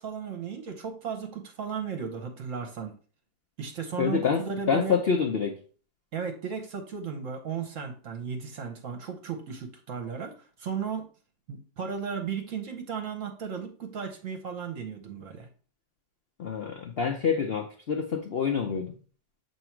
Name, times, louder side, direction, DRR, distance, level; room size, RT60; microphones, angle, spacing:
voice 1, 0.0-2.9 3.6-5.0 6.1-11.1 11.5-15.5, right 6 dB, 55° right, 1.0 m, -35 dB
voice 2, 4.0-4.4 4.7-5.6 16.4-19.0, left 6 dB, 75° left, 0.5 m, -27 dB
7.1 x 3.0 x 4.5 m
omnidirectional pair, 1.9 m